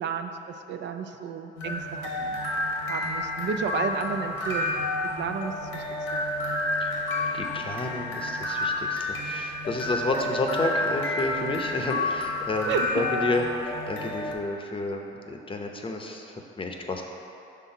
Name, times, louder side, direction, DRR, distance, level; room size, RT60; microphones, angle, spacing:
voice 1, 0.0-2.4 2.9-4.8 5.2-5.8 6.1-6.2 11.9-12.1 12.6-13.1, right 6 dB, 65° right, 6 dB, 0.4 m, -32 dB
sound 1, 1.6-14.3, left 2 dB, 80° left, 0.9 m, -30 dB
voice 2, 7.3-17.1, left 2 dB, 25° left, 2 dB, 0.7 m, -31 dB
5.8 x 3.6 x 5.6 m, 2.8 s
cardioid pair, 90°, 20 cm